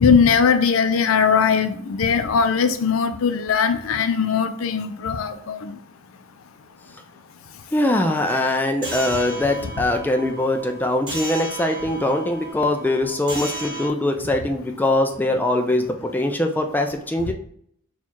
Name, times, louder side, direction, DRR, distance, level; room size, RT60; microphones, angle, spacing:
voice 1, 0.0-5.7, left 6 dB, 75° left, 9 dB, 0.4 m, -19 dB
voice 2, 7.7-17.3, left 1 dB, 10° left, 4 dB, 0.3 m, -22 dB
sound 1, 8.8-13.9, right 1 dB, 25° right, 1.6 m, -34 dB
4.3 x 2.4 x 4.3 m, 0.67 s
head